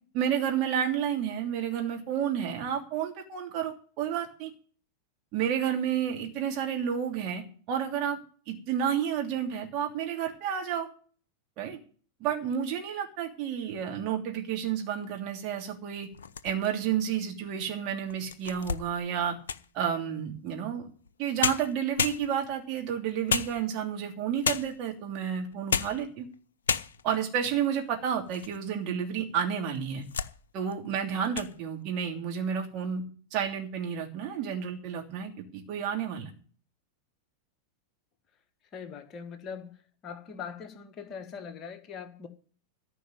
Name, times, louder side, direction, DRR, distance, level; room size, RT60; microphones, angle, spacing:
voice 1, 0.1-4.5 5.3-7.4 7.7-8.2 8.5-10.9 11.6-11.8 12.2-16.1 16.4-19.4 19.7-20.9 21.2-26.3 27.0-30.0 30.5-33.0 33.3-36.3, right 8 dB, 40° right, 2 dB, 2.9 m, -31 dB
sound 1, 16.1-16.9 17.5-17.6 18.1-19.8 21.1-21.2 21.4-22.6 23.3-24.0 24.4-24.9 25.5-26.1 26.3-26.4 26.7-27.2 27.8-28.6 28.9-29.0 29.7-30.4 30.7-30.9 31.2-31.5, left 6 dB, 65° left, 0.6 m, -32 dB
voice 2, 38.7-39.7 40.0-42.3, left 6 dB, 30° left, 7 dB, 1.5 m, -41 dB
14.0 x 5.3 x 9.4 m, 0.42 s
figure-of-eight pair, 90°, 0 cm